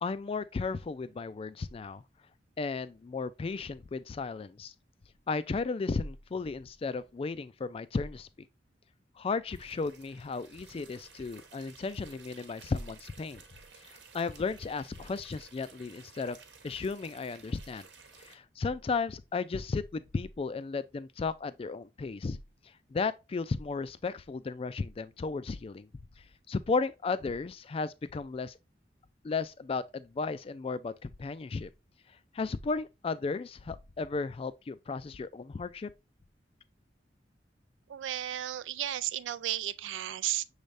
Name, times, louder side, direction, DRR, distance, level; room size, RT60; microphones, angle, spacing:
voice 1, 0.0-2.0 2.6-4.7 5.3-8.3 9.2-13.4 13.8-16.4 16.6-17.9 18.2-22.4 22.9-25.9 26.5-28.6 29.2-31.7 32.3-35.9, left 4 dB, 30° left, 0.3 m, -34 dB
sound 1, 9.5-18.3, right 5 dB, 70° right, 1.0 m, -55 dB
voice 2, 37.9-40.4, right 12 dB, 90° right, 0.3 m, -34 dB
6.3 x 3.3 x 2.5 m
head